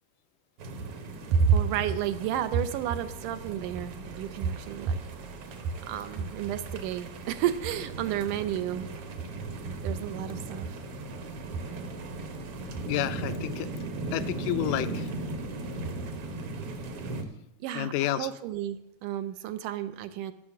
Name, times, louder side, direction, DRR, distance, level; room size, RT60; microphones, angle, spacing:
sound 1, 0.6-17.2, right 2 dB, 60° right, 1.7 m, -38 dB
voice 1, 1.3-5.0 5.9-8.9 9.8-10.7 17.6-20.3, right 8 dB, 80° right, 10 dB, 2.1 m, -30 dB
voice 2, 12.9-13.7 14.1-15.1 17.8-18.3, left 13 dB, 85° left, 13 dB, 2.2 m, -30 dB
12.5 x 6.5 x 7.0 m, 0.82 s
omnidirectional pair, 3.8 m